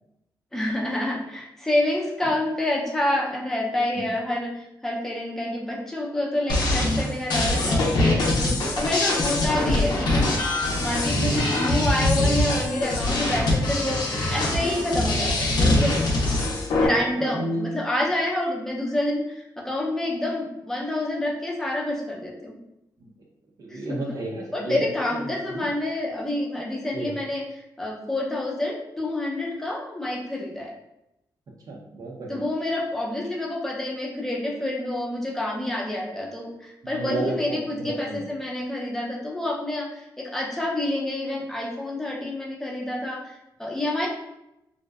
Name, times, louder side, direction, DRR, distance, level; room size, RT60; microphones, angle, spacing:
voice 1, 0.5-16.0 16.8-22.5 23.7-24.1 24.5-30.7 32.3-44.1, left 1 dB, 5° left, -3 dB, 0.5 m, -28 dB
sound 1, 6.5-16.9, left 2 dB, 75° left, 0.5 m, -23 dB
voice 2, 17.2-17.7 23.0-23.1 23.6-24.8 25.5-25.6 26.9-27.1 31.7-32.4 36.9-38.2, right 2 dB, 55° right, -2 dB, 0.5 m, -32 dB
2.6 x 2.1 x 2.3 m, 0.87 s
wide cardioid pair, 120°, 8 cm